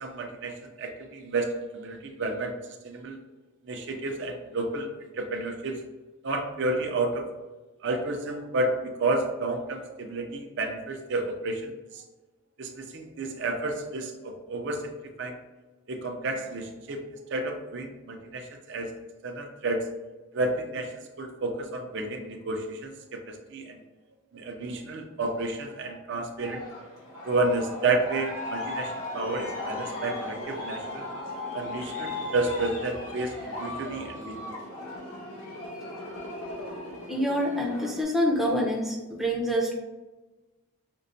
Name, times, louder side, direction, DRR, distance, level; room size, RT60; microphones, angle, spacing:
voice 1, 0.0-2.5 2.8-3.2 3.6-5.8 6.2-7.3 7.8-12.0 12.6-14.9 15.2-15.4 15.9-17.0 17.3-18.9 19.2-19.8 20.3-20.9 21.2-23.8 24.3-26.6 27.2-31.1 31.5-34.4, right 2 dB, 55° right, 3 dB, 0.5 m, -31 dB
Aircraft, 26.4-38.0, left 2 dB, 85° left, 1.5 m, -37 dB
voice 2, 37.1-39.7, equal, ahead, -2 dB, 0.5 m, -26 dB
5.2 x 2.1 x 2.6 m, 1.2 s
head